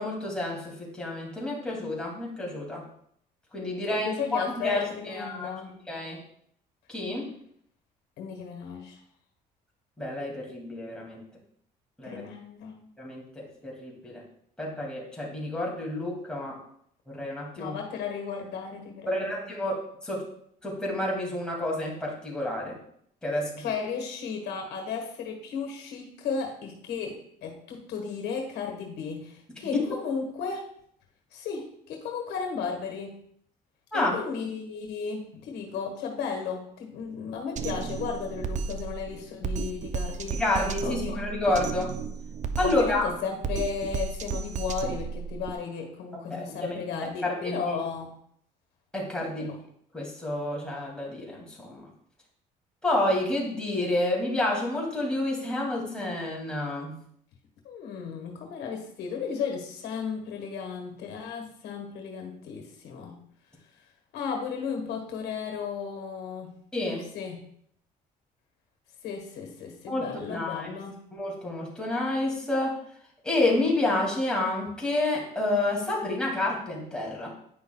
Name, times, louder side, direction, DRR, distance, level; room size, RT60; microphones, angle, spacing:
voice 1, 0.0-2.8 3.5-5.5 5.9-6.2 6.9-7.2 10.0-11.2 12.0-12.2 13.0-14.2 14.6-16.6 17.1-17.7 19.1-20.2 20.6-22.8 23.2-23.6 29.7-29.8 33.9-34.2 40.3-41.9 42.6-43.0 46.3-46.8 47.2-47.8 48.9-49.6 49.9-51.8 52.8-57.0 66.7-67.1 69.9-70.7 71.1-72.8 73.2-77.3, left 2 dB, 5° left, -4 dB, 2.4 m, -29 dB
voice 2, 3.9-5.8 8.2-9.0 12.0-12.9 17.5-19.4 23.6-30.7 31.3-33.2 33.9-40.4 40.8-41.2 42.6-48.1 49.4-49.6 57.6-63.2 64.1-66.6 67.1-67.4 69.0-71.0, left 6 dB, 80° left, 3 dB, 1.4 m, -34 dB
Drum kit, 37.6-45.5, right 5 dB, 45° right, 0.5 m, -33 dB
9.6 x 5.7 x 2.3 m, 0.68 s
cardioid pair, 110°, 17 cm